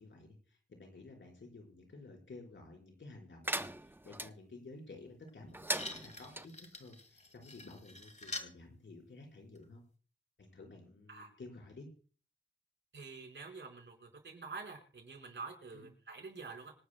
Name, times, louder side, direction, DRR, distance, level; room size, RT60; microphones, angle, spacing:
voice 1, 0.0-9.8 10.4-11.9 15.7-15.9, left 2 dB, 90° left, 1 dB, 4.7 m, -53 dB
sound 1, 3.4-4.3 5.5-6.5, right 1 dB, 10° right, 0.6 m, -39 dB
sound 2, 5.3-5.4 5.7-8.5 9.5-9.6, left 2 dB, 40° left, 1.9 m, -47 dB
voice 2, 12.9-16.7, right 4 dB, 85° right, 2 dB, 4.8 m, -47 dB
26.0 x 11.0 x 2.2 m, 0.39 s
wide cardioid pair, 65°, 19 cm